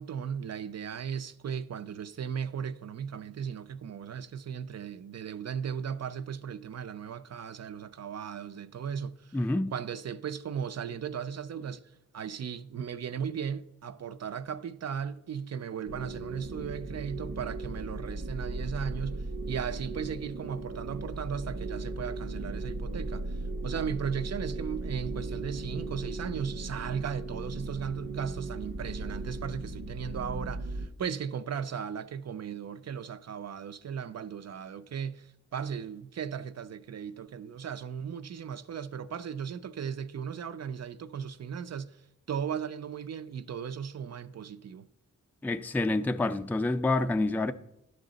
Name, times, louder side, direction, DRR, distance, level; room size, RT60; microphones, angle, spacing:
voice 1, 0.0-9.4 9.7-11.8 12.1-42.0 42.3-44.9, right 7 dB, 55° right, 0.5 m, -36 dB
voice 2, 9.3-9.7 45.4-47.5, left 2 dB, 5° left, 0.4 m, -27 dB
sound 1, 15.9-30.9, right 2 dB, 85° right, 0.8 m, -37 dB
11.0 x 6.5 x 3.9 m
cardioid pair, 75°, 32 cm